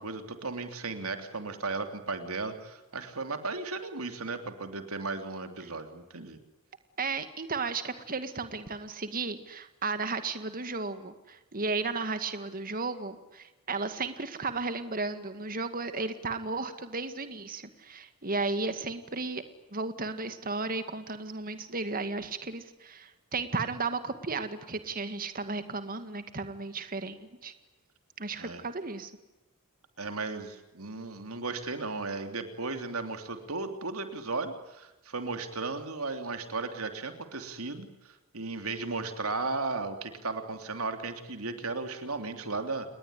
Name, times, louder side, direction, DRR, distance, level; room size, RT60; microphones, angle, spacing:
voice 1, 0.0-6.4 28.4-28.6 30.0-42.9, right 3 dB, 75° right, 7 dB, 3.2 m, -35 dB
voice 2, 7.0-19.4 19.7-27.5 28.2-29.1, right 3 dB, 40° right, 9 dB, 2.0 m, -34 dB
29.5 x 21.0 x 9.8 m, 1.0 s
head